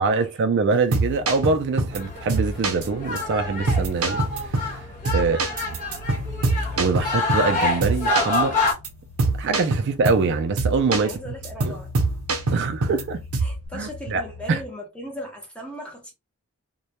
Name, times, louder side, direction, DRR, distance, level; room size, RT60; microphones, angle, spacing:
voice 1, 0.0-4.2 4.5-4.8 5.1-5.5 6.7-8.7 9.4-11.2 12.5-13.2 13.7-14.2 14.5-14.6, right 4 dB, 55° right, 0.3 m, -24 dB
sound 1, 0.7-2.0 2.3-2.9 3.2-3.3 3.7-4.8 5.0-7.5 7.8-8.4 8.7-8.9 9.2-10.3 10.6-11.1 11.4-13.0 13.3-13.6, right 3 dB, 90° right, 0.6 m, -24 dB
sound 2, 1.0-14.7, left 3 dB, 80° left, 0.4 m, -42 dB
sound 3, 1.9-8.7, left 3 dB, 40° left, 1.0 m, -27 dB
voice 2, 5.2-5.5 11.0-11.9 12.5-12.6 13.4-16.1, equal, 5° left, 0.7 m, -38 dB
2.2 x 2.1 x 2.8 m
head